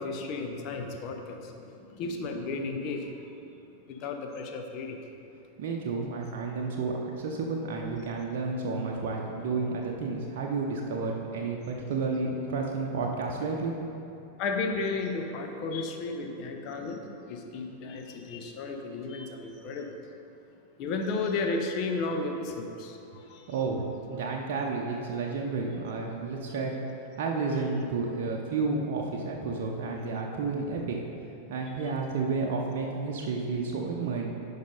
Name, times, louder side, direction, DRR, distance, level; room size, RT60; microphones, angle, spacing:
voice 1, 0.0-3.1 3.9-5.0 14.4-20.0 20.8-23.5, left 3 dB, 40° left, 4 dB, 0.8 m, -33 dB
voice 2, 5.6-13.7 23.5-31.0 31.5-34.3, right 4 dB, 50° right, -1 dB, 0.7 m, -31 dB
10.5 x 4.1 x 5.2 m, 2.8 s
figure-of-eight pair, 90°, 0 cm